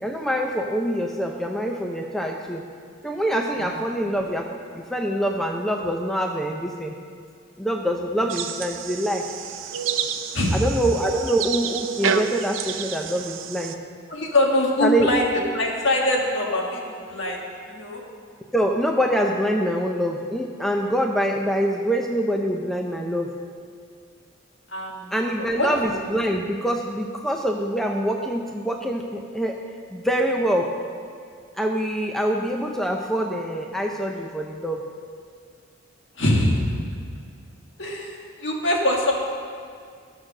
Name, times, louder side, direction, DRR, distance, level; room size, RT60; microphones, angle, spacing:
voice 1, 0.0-2.7 3.0-4.5 4.8-7.0 7.6-9.2 10.5-13.8 14.8-15.1 18.5-23.4 25.1-29.6 29.9-30.7 31.6-34.8, equal, ahead, 1 dB, 0.5 m, -25 dB
sound 1, 8.3-13.7, right 7 dB, 70° right, 0.5 m, -29 dB
voice 2, 14.1-15.3 15.5-16.8 17.1-17.4 17.7-18.0 24.7-25.1 25.4-25.7 36.2-36.6 37.8-39.1, left 1 dB, 60° left, -1 dB, 1.7 m, -23 dB
13.0 x 6.2 x 6.4 m, 2.2 s
head